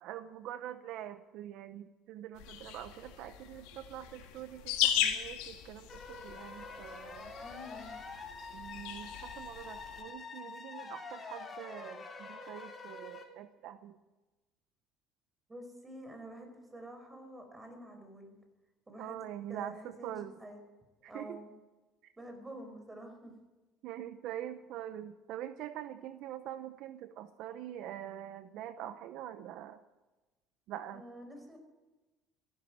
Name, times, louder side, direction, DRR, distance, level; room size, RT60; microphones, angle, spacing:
voice 1, 0.0-7.3 8.5-14.0 19.0-20.3 21.1-21.4 23.8-29.8 30.7-31.0, right 11 dB, 70° right, 11 dB, 0.8 m, -44 dB
sound 1, 2.4-10.0, left 11 dB, 85° left, 2.0 m, -37 dB
sound 2, 5.9-13.2, left 4 dB, 30° left, 3.2 m, -46 dB
voice 2, 7.4-7.9 15.5-18.4 18.9-19.2 19.4-20.6 21.1-21.5 22.2-23.3 30.9-31.6, right 1 dB, 15° right, 5 dB, 4.9 m, -48 dB
15.0 x 12.5 x 7.5 m, 1.2 s
supercardioid pair, 100°, 0 cm